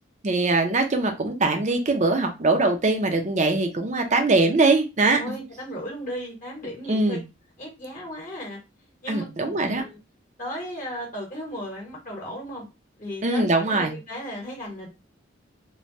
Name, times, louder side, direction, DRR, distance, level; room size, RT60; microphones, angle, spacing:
voice 1, 0.2-5.2 6.9-7.2 9.1-9.8 13.2-13.9, right 3 dB, 40° right, 5 dB, 0.5 m, -22 dB
voice 2, 5.1-7.2 7.6-8.6 9.0-10.0 10.4-12.7 13.0-14.9, equal, 40° left, -2 dB, 0.9 m, -35 dB
3.2 x 2.2 x 2.6 m, 0.26 s
head